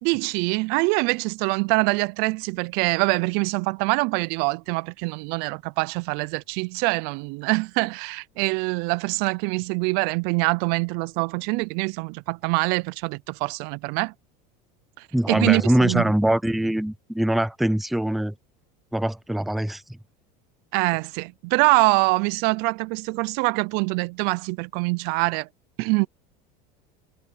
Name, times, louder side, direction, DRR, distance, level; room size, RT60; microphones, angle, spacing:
voice 1, 0.0-14.1 15.0-16.0 20.7-25.5 25.8-26.1, right 27 dB, 60° right, 0.4 m, -24 dB
voice 2, 15.1-18.3 18.9-19.8, right 1 dB, ahead, 0.4 m, -23 dB
cardioid pair, 150°, 19 cm